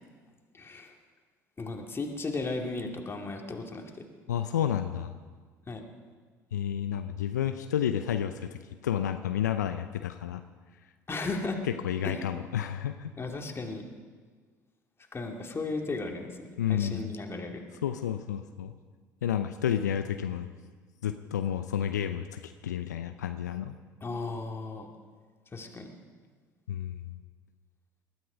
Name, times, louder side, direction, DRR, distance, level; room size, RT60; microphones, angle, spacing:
voice 1, 0.5-0.9 1.6-4.0 5.7-5.9 11.1-11.6 12.0-12.1 13.2-13.8 15.1-17.6 24.0-24.9 25.5-25.9, left 3 dB, 25° left, 2 dB, 2.5 m, -35 dB
voice 2, 4.3-5.1 6.5-10.4 11.6-13.1 16.6-17.1 17.8-18.7 19.2-20.5 21.0-23.8 26.7-27.1, left 9 dB, 85° left, 9 dB, 0.5 m, -31 dB
20.0 x 12.5 x 5.2 m, 1.5 s
hypercardioid pair, 60°, 9 cm